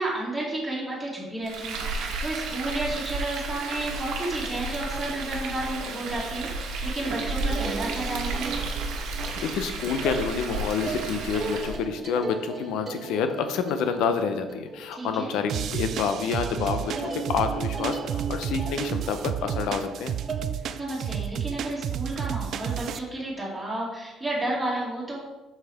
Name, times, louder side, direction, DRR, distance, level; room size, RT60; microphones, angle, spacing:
voice 1, 0.0-8.6 14.9-15.3 20.7-25.2, right 1 dB, 5° right, -7 dB, 2.3 m, -32 dB
Frying (food), 1.4-11.8, right 3 dB, 75° right, 1.3 m, -32 dB
sound 1, 7.0-15.8 16.1-16.5 16.9-20.5, right 4 dB, 25° right, 0.8 m, -37 dB
voice 2, 9.4-20.2, left 6 dB, 75° left, 8 dB, 0.7 m, -28 dB
sound 2, 15.5-23.0, right 9 dB, 55° right, 0.4 m, -32 dB
7.9 x 5.7 x 3.5 m, 1.1 s
cardioid pair, 145°, 0 cm